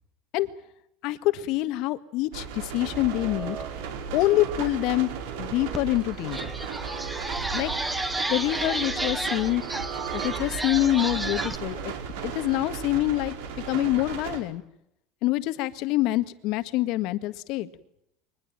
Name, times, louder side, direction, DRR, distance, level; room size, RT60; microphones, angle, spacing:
voice 1, 1.0-3.6 4.1-6.5 7.5-7.7 8.3-9.6 10.1-11.9 12.2-13.3 13.6-14.6 15.2-17.7, left 16 dB, 55° left, 11 dB, 1.8 m, -26 dB
sound 1, 2.3-14.4, right 7 dB, 80° right, 5.3 m, -36 dB
sound 2, 2.7-10.9, right 8 dB, 40° right, 4.2 m, -41 dB
sound 3, 5.7-5.8 6.2-11.6, right 1 dB, 5° right, 1.9 m, -32 dB
23.5 x 20.0 x 9.0 m, 0.77 s
supercardioid pair, 150°, 0 cm